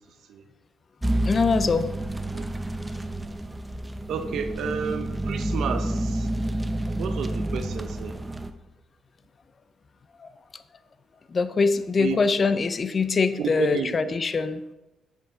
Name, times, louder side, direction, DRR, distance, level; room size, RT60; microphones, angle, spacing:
sound 1, 1.0-8.5, right 1 dB, 15° right, 0.5 m, -29 dB
voice 1, 1.3-1.9 11.3-14.6, left 4 dB, 40° left, 12 dB, 0.4 m, -23 dB
voice 2, 4.1-6.3 7.0-8.1 12.0-12.2 13.4-14.0, right 6 dB, 70° right, 7 dB, 0.7 m, -31 dB
7.3 x 5.4 x 3.8 m, 1.0 s
cardioid pair, 90°, 0 cm